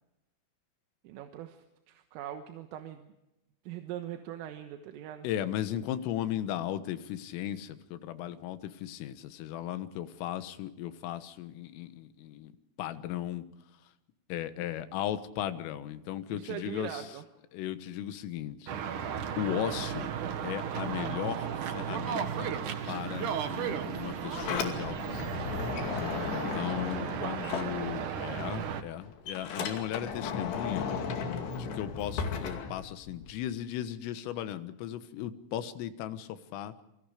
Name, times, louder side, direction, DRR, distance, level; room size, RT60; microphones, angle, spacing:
voice 1, 1.1-1.6 1.9-3.1 3.7-5.3 16.3-17.2 27.0-27.8 29.6-29.7, right 11 dB, 85° right, 6 dB, 3.9 m, -41 dB
voice 2, 5.2-12.5 12.8-13.5 14.3-17.1 17.5-18.8 19.4-20.1 20.4-22.6 22.9-25.6 26.3-30.9 31.5-36.7, left 11 dB, 85° left, 11 dB, 3.9 m, -36 dB
sound 1, 18.7-28.8, right 8 dB, 60° right, 2.2 m, -35 dB
Sliding door, 24.0-28.3 28.6-33.4, left 6 dB, 60° left, 4.3 m, -35 dB
28.5 x 23.5 x 5.1 m, 0.91 s
omnidirectional pair, 5.8 m